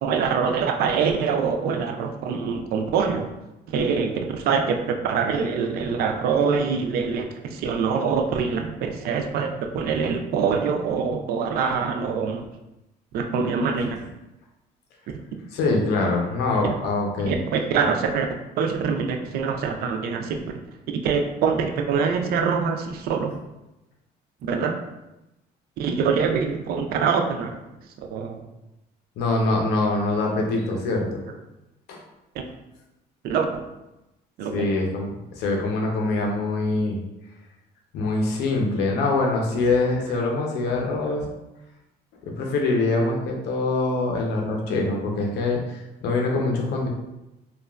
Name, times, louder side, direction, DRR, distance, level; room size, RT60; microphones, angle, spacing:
voice 1, 0.0-3.3 3.7-12.4 13.1-14.0 16.6-16.7 17.2-18.3 18.6-20.4 20.9-23.3 24.5-24.7 25.8-27.6 28.1-28.4 33.2-33.5 34.4-34.7, right 5 dB, 65° right, 4 dB, 0.4 m, -24 dB
voice 2, 15.5-17.3 29.2-31.1 31.9-32.0 34.5-37.0 37.9-41.3 42.4-46.9, left 2 dB, 75° left, 0 dB, 0.6 m, -24 dB
2.9 x 2.2 x 2.3 m, 0.94 s
cardioid pair, 110°, 17 cm